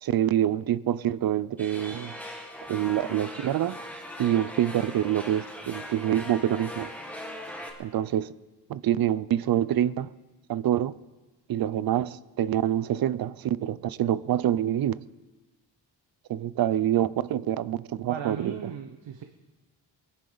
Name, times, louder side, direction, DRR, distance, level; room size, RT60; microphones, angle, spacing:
voice 1, 0.0-2.1 2.7-3.8 4.2-6.9 7.8-8.3 8.7-10.1 10.5-10.9 11.5-15.0 16.3-18.6, right 11 dB, 55° right, 0.5 m, -26 dB
sound 1, 1.6-7.7, equal, 5° left, 1.5 m, -40 dB
voice 2, 18.1-19.2, right 7 dB, 80° right, 1.0 m, -36 dB
22.5 x 11.0 x 3.9 m
wide cardioid pair, 170°, 44 cm